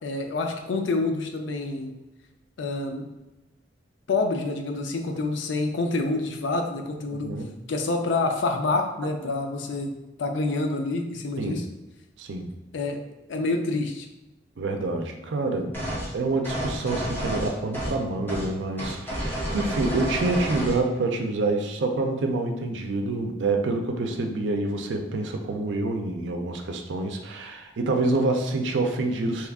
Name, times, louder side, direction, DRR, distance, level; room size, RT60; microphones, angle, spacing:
voice 1, 0.0-2.0 2.6-3.1 4.1-7.3 7.7-9.9 10.2-11.6 12.7-13.0 13.3-14.1 14.9-15.0, left 3 dB, 90° left, 4 dB, 0.5 m, -27 dB
voice 2, 7.1-7.6 11.4-11.7 12.2-12.5 14.6-15.7 16.1-29.5, right 2 dB, 75° right, 4 dB, 0.4 m, -27 dB
sound 1, 15.7-16.1 16.4-18.0 18.3-18.5 18.8-20.8, equal, 10° left, 0.8 m, -30 dB
3.0 x 2.3 x 3.5 m, 1.0 s
head